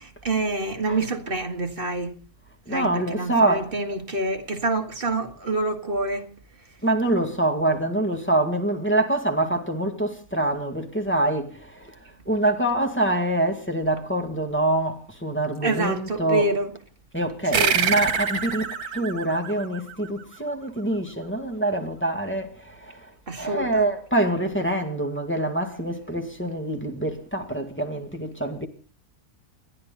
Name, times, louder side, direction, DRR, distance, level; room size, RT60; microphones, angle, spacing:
voice 1, 0.0-2.2 2.7-6.3 15.6-16.7 17.4-17.8 23.3-23.9, right 2 dB, 35° right, 1.9 m, -27 dB
voice 2, 2.7-3.7 6.8-12.0 12.3-16.5 17.1-23.1 23.4-28.7, right 1 dB, 5° left, 2.0 m, -25 dB
sound 1, 17.5-20.5, right 6 dB, 75° right, 2.0 m, -26 dB
29.5 x 11.0 x 4.0 m
omnidirectional pair, 1.6 m